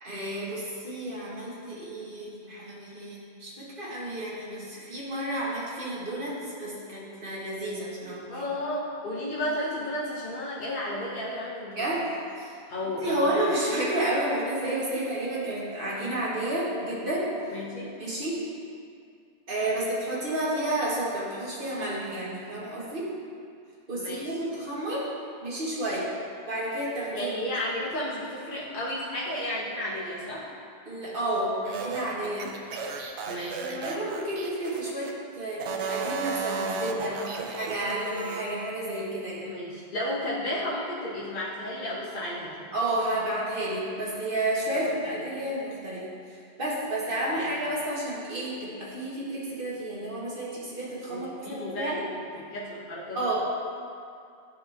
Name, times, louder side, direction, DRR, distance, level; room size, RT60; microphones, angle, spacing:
voice 1, 0.0-8.4 11.8-12.0 12.3-12.5 13.0-17.3 18.0-18.4 19.5-23.1 23.9-25.1 25.4-26.1 26.5-27.3 30.9-32.5 33.6-39.5 42.7-52.1 53.1-53.3, right 1 dB, 55° right, -7 dB, 1.8 m, -31 dB
voice 2, 8.3-11.9 12.7-13.4 14.9-15.0 17.5-18.0 23.9-24.4 27.1-30.4 33.3-33.9 39.4-42.7 44.7-44.9 47.3-47.5 51.1-52.0 52.3-53.2, left 1 dB, 50° left, -7 dB, 1.2 m, -33 dB
sound 1, 31.7-35.1 35.5-38.5, right 5 dB, 85° right, 0.9 m, -34 dB
11.0 x 4.9 x 2.9 m, 2.4 s
omnidirectional pair, 1.1 m